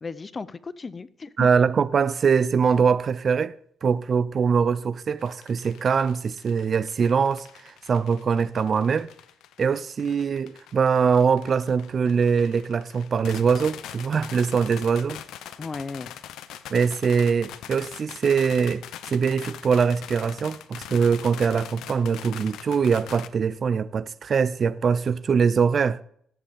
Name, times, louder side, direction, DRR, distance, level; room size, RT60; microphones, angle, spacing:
voice 1, 0.0-1.5 15.6-16.1, left 4 dB, 30° left, 0.6 m, -35 dB
voice 2, 1.4-3.6 3.8-9.1 9.6-15.2 16.7-26.0, right 6 dB, 45° right, 0.5 m, -23 dB
sound 1, 5.2-23.3, left 11 dB, 85° left, 0.7 m, -42 dB
14.5 x 8.0 x 3.5 m
cardioid pair, 90°, 0 cm